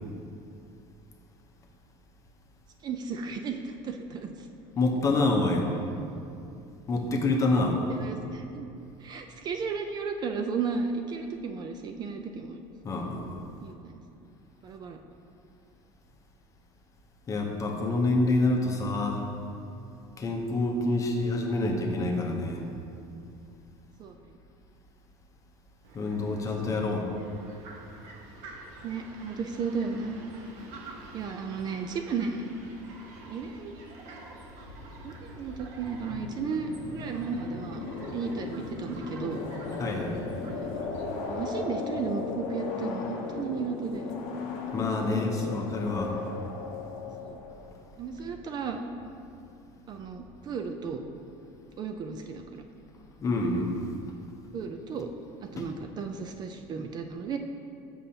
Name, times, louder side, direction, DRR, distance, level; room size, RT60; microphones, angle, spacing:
voice 1, 2.8-4.5 7.9-8.7 9.0-12.6 13.6-14.0 14.6-15.0 24.0-24.1 26.6-26.7 28.8-30.1 31.1-32.5 33.3-33.7 35.0-39.4 40.5-40.9 41.3-44.1 45.0-45.8 47.2-47.4 48.0-48.8 49.9-51.0 51.8-52.6 54.5-55.1 55.4-57.4, right 5 dB, 35° right, 5 dB, 0.3 m, -34 dB
voice 2, 4.8-5.7 6.9-7.8 12.8-13.4 17.3-19.3 20.2-22.6 25.9-27.0 39.8-40.2 44.7-46.2 53.2-53.8 55.6-55.7, left 2 dB, 25° left, 2 dB, 0.7 m, -27 dB
Fowl, 25.8-41.4, right 2 dB, 65° right, 0.9 m, -48 dB
sound 1, 34.5-47.9, left 4 dB, 70° left, 0.7 m, -37 dB
7.0 x 5.4 x 2.8 m, 2.6 s
supercardioid pair, 125°, 12 cm